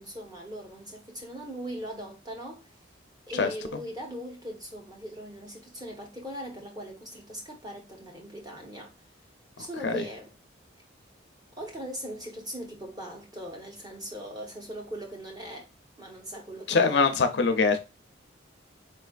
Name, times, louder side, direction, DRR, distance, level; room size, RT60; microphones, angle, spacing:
voice 1, 0.0-2.7 3.3-8.9 9.6-10.3 11.6-15.7 16.0-17.1, equal, 20° right, 1.0 m, -40 dB
voice 2, 16.7-17.8, left 4 dB, 60° left, 0.5 m, -23 dB
4.4 x 3.2 x 2.3 m
head